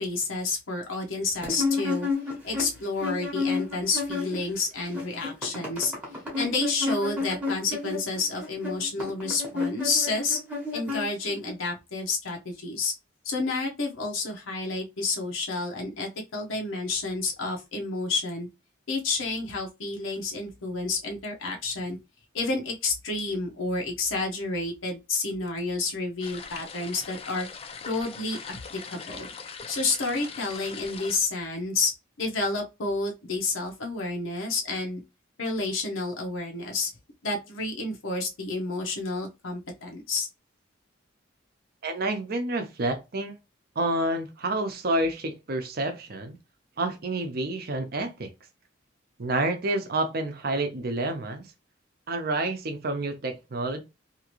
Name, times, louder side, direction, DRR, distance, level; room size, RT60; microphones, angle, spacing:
voice 1, 0.0-2.1 2.4-5.9 6.4-10.4 10.7-12.9 13.2-18.5 18.9-22.0 22.3-27.5 27.9-29.3 29.7-31.9 32.2-35.0 35.4-36.9 37.2-40.3, left 3 dB, 90° left, 0.8 m, -30 dB
sound 1, 1.4-4.6 4.8-11.5, left 4 dB, 5° right, 0.8 m, -31 dB
sound 2, 26.2-31.2, left 5 dB, 30° left, 0.3 m, -41 dB
voice 2, 41.8-43.3 43.8-46.4 46.8-48.3 49.2-51.4 52.1-53.8, right 2 dB, 50° right, 0.6 m, -29 dB
2.8 x 2.5 x 2.9 m
head